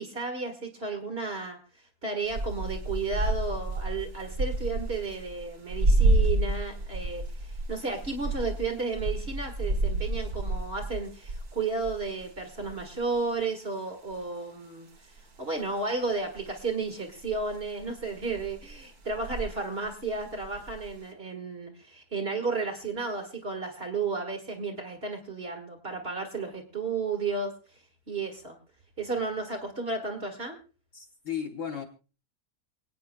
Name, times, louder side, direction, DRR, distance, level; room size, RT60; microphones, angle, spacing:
voice 1, 0.0-1.6 2.0-7.2 7.7-14.9 15.4-27.5 28.1-28.6 29.0-30.6, right 4 dB, 40° right, 2 dB, 1.9 m, -33 dB
sound 1, 2.3-13.2 14.1-14.2 15.0-15.2 16.4-16.6 17.2-19.6 19.9-20.9, right 2 dB, 75° right, 2.4 m, -30 dB
voice 2, 30.9-31.8, left 8 dB, 55° left, 3 dB, 1.5 m, -35 dB
28.0 x 9.3 x 2.2 m, 0.35 s
omnidirectional pair, 1.6 m